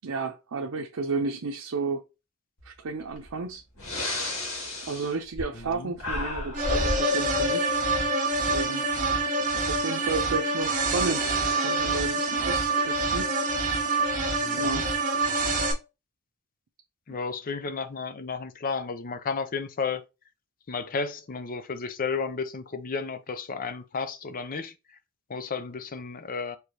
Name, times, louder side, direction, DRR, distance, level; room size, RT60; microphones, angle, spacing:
voice 1, 0.0-2.0 2.6-3.6 4.8-7.8 8.3-8.9 9.5-13.3 14.5-14.9, right 4 dB, 90° right, 0.6 m, -32 dB
Breathing, 3.1-3.3 3.7-5.7 6.0-7.1, left 1 dB, 70° left, 2.1 m, -32 dB
voice 2, 5.5-5.9 14.4-14.8 17.1-20.0 20.7-24.7 25.3-26.6, left 5 dB, 45° left, 0.5 m, -33 dB
sound 1, 6.5-15.7, right 2 dB, 40° right, 1.4 m, -26 dB
4.8 x 3.3 x 2.8 m
head